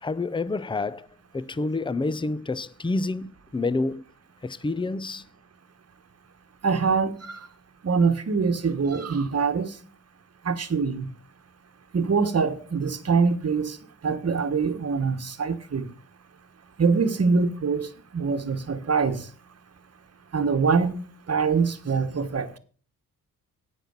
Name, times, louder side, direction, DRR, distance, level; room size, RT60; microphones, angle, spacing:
voice 1, 0.0-1.1 1.3-4.0 4.4-5.2, left 3 dB, 15° left, 0.6 m, -28 dB
voice 2, 6.6-7.4 7.8-9.7 10.4-11.1 11.9-13.8 14.0-15.8 16.8-17.9 18.1-19.2 20.3-21.0 21.3-22.5, right 5 dB, 45° right, 1.3 m, -24 dB
9.2 x 6.0 x 7.3 m
cardioid pair, 60°, 36 cm